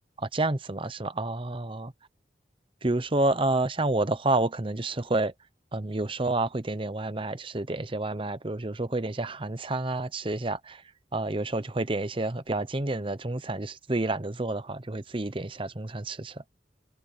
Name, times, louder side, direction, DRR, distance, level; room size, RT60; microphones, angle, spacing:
voice 1, 0.2-1.9 2.8-5.3 5.7-10.8 11.1-16.4, right 2 dB, 30° right, 0.9 m, -29 dB
open air
head